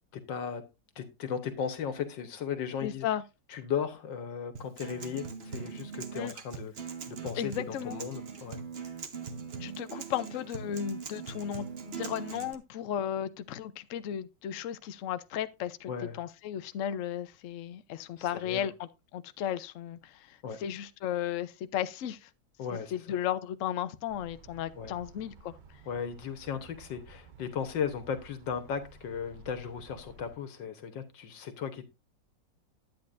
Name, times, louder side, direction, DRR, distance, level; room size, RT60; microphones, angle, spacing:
voice 1, 0.1-0.6 1.0-3.1 3.5-8.6 15.9-16.2 18.2-18.7 20.4-20.6 22.6-22.9 24.8-25.0 25.9-31.8, left 7 dB, 85° left, 1.9 m, -36 dB
voice 2, 2.8-3.2 6.1-6.3 7.4-8.0 9.6-15.9 16.2-22.3 22.7-25.5, left 10 dB, 65° left, 0.8 m, -35 dB
Acoustic guitar, 4.5-12.5, right 6 dB, 45° right, 0.9 m, -41 dB
sound 1, 24.1-30.4, right 5 dB, 85° right, 0.4 m, -54 dB
10.5 x 8.8 x 2.6 m
omnidirectional pair, 1.9 m